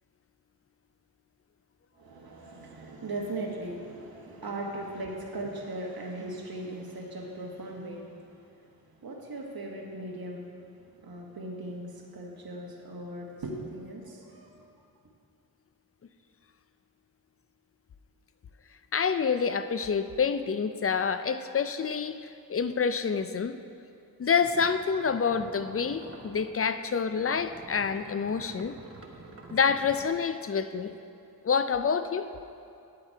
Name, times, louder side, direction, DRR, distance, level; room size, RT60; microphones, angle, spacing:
voice 1, 2.0-8.7 9.0-10.6 11.0-14.7, right 1 dB, 65° right, 0 dB, 1.4 m, -39 dB
voice 2, 18.9-23.6 24.2-28.7 29.5-31.0 31.4-32.3, left 6 dB, 40° left, 11 dB, 0.4 m, -27 dB
sound 1, 24.4-26.8 27.1-30.1, right 3 dB, 35° right, 1.0 m, -47 dB
9.9 x 7.4 x 4.5 m, 2.5 s
wide cardioid pair, 80°, 38 cm